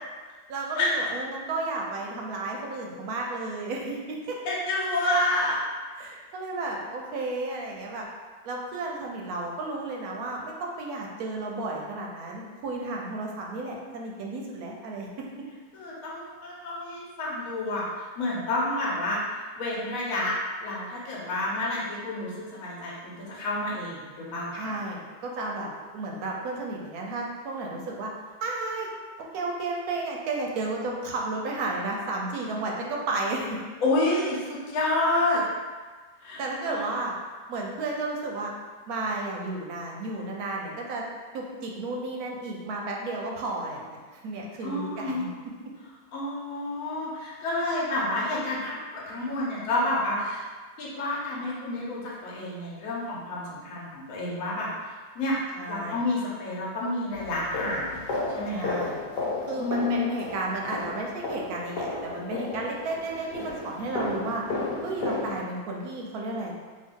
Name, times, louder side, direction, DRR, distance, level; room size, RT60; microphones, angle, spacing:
voice 1, 0.5-4.4 6.0-8.1 8.4-15.1 24.5-28.1 28.4-28.9 29.3-33.6 36.4-37.1 37.5-38.5 38.9-41.0 41.3-45.3 55.5-56.0 58.5-59.0 59.5-64.4 64.8-66.5, right 2 dB, 70° right, -1 dB, 1.0 m, -33 dB
voice 2, 4.4-5.6 15.7-17.9 18.2-20.3 20.6-22.3 22.6-24.8 33.8-35.4 36.2-36.9 44.6-45.2 46.1-50.5 50.8-55.4 55.7-58.0 58.3-58.8 59.6-60.0, left 2 dB, 60° left, -5 dB, 1.2 m, -29 dB
sound 1, 57.1-65.4, left 3 dB, 85° left, 1.3 m, -33 dB
2.7 x 2.6 x 3.6 m, 1.4 s
omnidirectional pair, 1.7 m